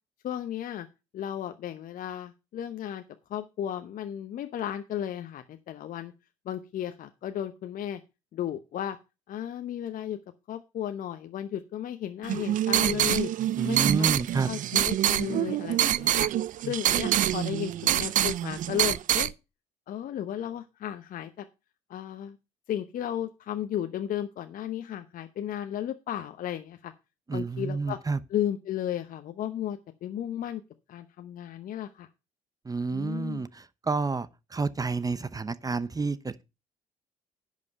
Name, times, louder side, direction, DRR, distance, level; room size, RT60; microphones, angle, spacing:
voice 1, 0.2-0.9 1.1-3.0 3.3-6.1 6.5-8.0 8.3-9.0 9.3-10.2 10.5-13.3 13.6-14.1 14.5-16.3 16.7-19.3 19.9-21.5 21.9-22.4 22.7-26.9 27.3-28.0 28.3-30.6 30.9-32.1 32.9-33.4, left 10 dB, 55° left, 0.9 m, -34 dB
sound 1, 12.2-19.3, right 13 dB, 50° right, 0.5 m, -26 dB
voice 2, 13.6-14.5 27.3-28.2 32.6-36.4, right 4 dB, 20° right, 0.8 m, -30 dB
10.5 x 5.2 x 6.5 m
hypercardioid pair, 55°, 17 cm